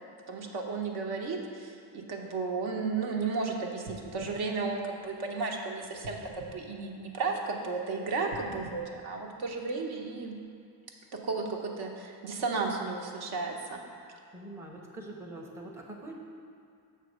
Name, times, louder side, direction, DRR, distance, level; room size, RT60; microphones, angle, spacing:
voice 1, 0.3-10.4 11.2-13.8 14.1-14.2, right 4 dB, 65° right, 1 dB, 1.0 m, -34 dB
sound 1, 3.8-5.5 6.0-7.6 8.2-9.9 10.5-10.6, right 2 dB, 90° right, 1.0 m, -50 dB
voice 2, 14.3-16.1, right 2 dB, 5° right, -1 dB, 0.6 m, -44 dB
6.9 x 4.2 x 6.2 m, 2.4 s
cardioid pair, 135°, 41 cm